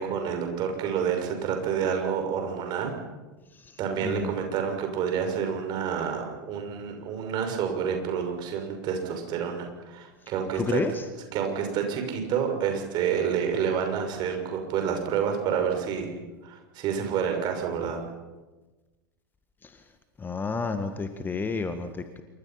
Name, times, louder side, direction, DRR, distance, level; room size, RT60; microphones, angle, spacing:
voice 1, 0.0-2.9 3.8-10.8 11.3-16.1 16.4-18.0, right 7 dB, 40° right, 4 dB, 6.2 m, -28 dB
voice 2, 4.0-4.3 10.6-11.0 19.6-19.7 20.2-22.2, left 4 dB, 15° left, 9 dB, 1.7 m, -30 dB
27.5 x 24.5 x 5.8 m, 1.2 s
figure-of-eight pair, 90°, 12 cm